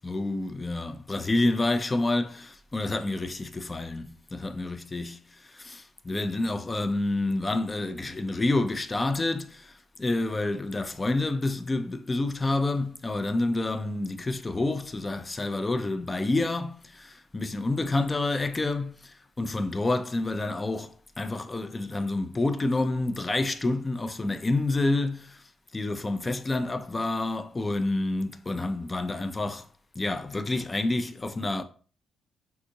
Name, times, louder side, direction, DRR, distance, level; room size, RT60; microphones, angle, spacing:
voice 1, 0.0-5.2 5.5-9.7 10.0-25.4 25.7-29.7 30.0-31.6, left 2 dB, 25° left, 0.3 m, -28 dB
3.5 x 2.6 x 2.7 m
cardioid pair, 90°, 0 cm